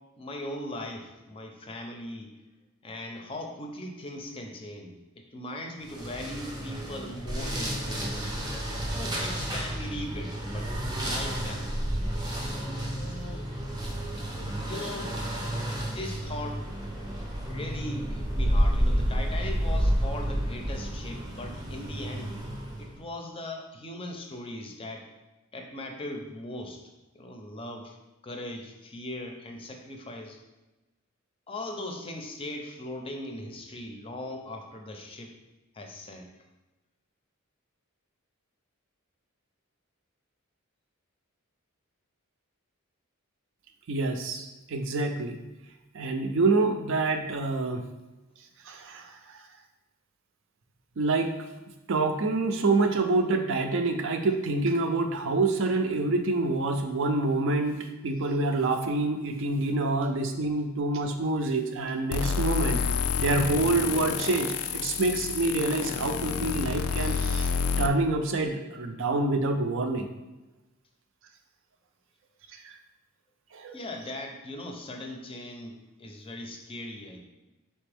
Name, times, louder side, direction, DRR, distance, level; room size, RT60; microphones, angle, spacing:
voice 1, 0.2-2.3 2.8-8.2 8.9-10.7 11.0-11.8 12.8-13.5 14.6-15.2 15.7-16.6 17.4-22.4 22.8-25.1 25.5-26.8 27.1-28.0 28.2-30.4 31.5-35.3 35.7-36.3 73.7-77.2, left 1 dB, 25° left, 3 dB, 0.5 m, -39 dB
sound 1, 5.8-23.0, equal, 20° right, 0.6 m, -30 dB
voice 2, 43.9-45.4 45.9-47.9 48.7-49.4 51.0-51.3 51.9-62.8 63.2-67.5 67.8-70.1 72.5-72.7 73.5-73.7, right 2 dB, 60° right, 5 dB, 0.5 m, -27 dB
sound 2, 62.1-67.9, left 6 dB, 85° left, 0.3 m, -29 dB
4.2 x 3.4 x 3.4 m, 1.1 s
head